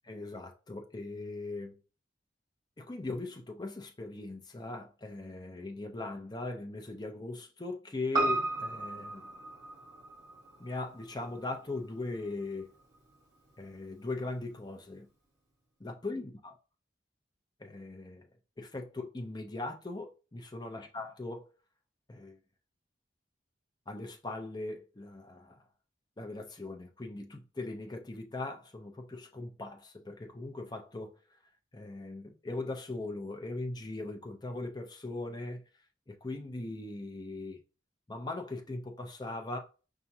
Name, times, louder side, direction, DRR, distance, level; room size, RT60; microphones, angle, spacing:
voice 1, 0.0-1.8 2.8-9.2 10.6-12.7 13.6-15.1 15.8-16.5 17.6-18.3 18.6-21.5 22.1-22.4 23.9-25.6 26.2-31.1 31.7-35.6 36.1-37.6 38.1-39.6, left 2 dB, 25° left, 0.6 m, -39 dB
Piano, 8.1-12.7 12.9-13.0, right 2 dB, 20° right, 1.4 m, -35 dB
5.7 x 2.4 x 2.7 m
head